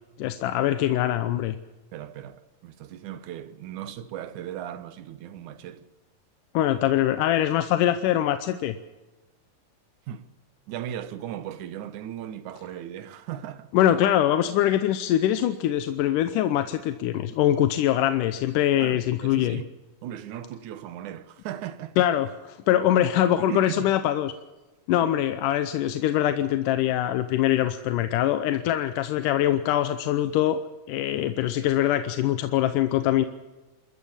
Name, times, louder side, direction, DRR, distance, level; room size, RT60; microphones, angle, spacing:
voice 1, 0.2-1.6 6.5-8.8 13.7-19.6 22.0-22.3 22.7-24.3 24.9-33.3, left 12 dB, 90° left, 2.4 m, -23 dB
voice 2, 1.9-5.9 10.1-10.3 10.7-13.7 18.8-19.7 20.0-22.1 23.4-24.0 25.0-25.1, right 11 dB, 75° right, 2.5 m, -37 dB
28.0 x 14.0 x 7.2 m
omnidirectional pair, 3.6 m